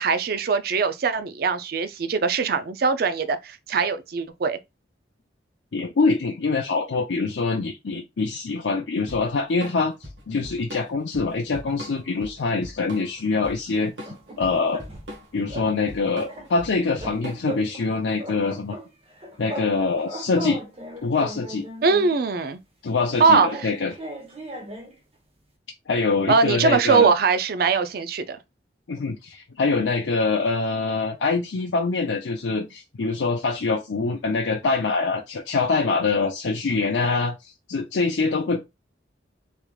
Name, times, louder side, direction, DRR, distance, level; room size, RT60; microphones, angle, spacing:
voice 1, 0.0-4.6 21.8-22.6 23.2-23.7 26.3-28.4, right 5 dB, 55° right, 0.4 m, -21 dB
voice 2, 5.7-9.9 10.3-13.9 14.4-14.8 15.3-18.8 19.4-20.6 21.0-21.6 22.8-23.9 25.9-27.1 28.9-38.6, left 4 dB, 80° left, 0.6 m, -24 dB
Drum kit / Drum, 9.1-17.7, equal, 80° right, 1.2 m, -40 dB
sound 1, 13.8-15.2 15.5-15.7 16.0-17.9 18.2-19.7 20.0-22.2 23.0-25.0, right 1 dB, 30° right, 1.0 m, -37 dB
3.4 x 3.3 x 2.3 m
head